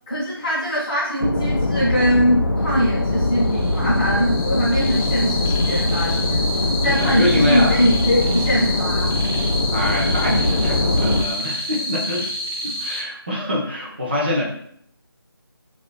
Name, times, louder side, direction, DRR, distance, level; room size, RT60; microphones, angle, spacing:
voice 1, 0.1-6.4 6.8-9.1, equal, 15° left, -11 dB, 0.6 m, -21 dB
sound 1, 1.2-11.2, left 2 dB, 60° left, 0.4 m, -22 dB
sound 2, 3.0-13.0, left 1 dB, 70° right, 0.8 m, -29 dB
voice 2, 6.8-7.8 9.7-12.3 12.6-14.5, left 1 dB, 25° right, -3 dB, 0.5 m, -24 dB
2.9 x 2.3 x 2.2 m, 0.66 s
figure-of-eight pair, 160°, 13 cm